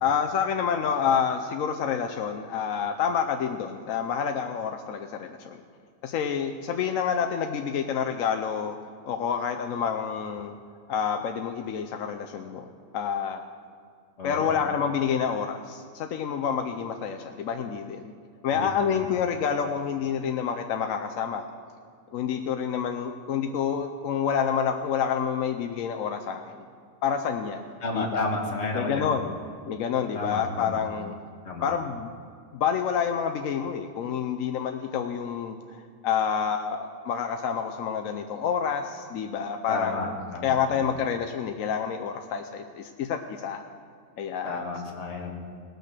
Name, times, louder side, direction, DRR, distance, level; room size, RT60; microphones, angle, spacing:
voice 1, 0.0-5.6 6.0-8.8 9.1-10.6 10.9-12.7 12.9-13.4 14.2-18.1 18.4-21.4 22.1-26.6 27.0-28.3 28.7-29.3 29.7-31.1 31.6-32.1 32.5-40.1 40.4-43.6 44.2-44.6, left 7 dB, 75° left, 5 dB, 1.0 m, -28 dB
voice 2, 14.2-14.5 18.5-18.7 18.9-19.1 27.8-29.1 30.1-30.8 31.4-31.7 39.7-40.9 44.4-45.3, left 2 dB, 55° left, 0 dB, 1.9 m, -32 dB
18.0 x 6.5 x 6.6 m, 2.2 s
omnidirectional pair, 1.4 m